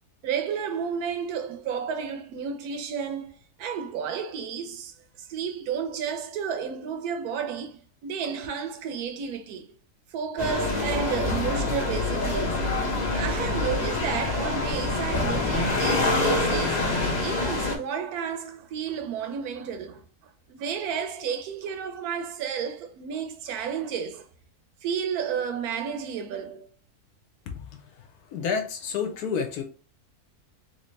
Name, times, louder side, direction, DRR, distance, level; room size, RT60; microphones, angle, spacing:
voice 1, 0.2-9.7 10.1-12.6 13.1-20.0 20.5-24.3 24.8-26.7, right 7 dB, 75° right, 1.1 m, -32 dB
sound 1, 10.4-17.8, left 2 dB, 40° left, 0.7 m, -26 dB
voice 2, 28.3-29.6, left 6 dB, 80° left, 1.2 m, -29 dB
3.3 x 2.8 x 3.1 m
omnidirectional pair, 1.6 m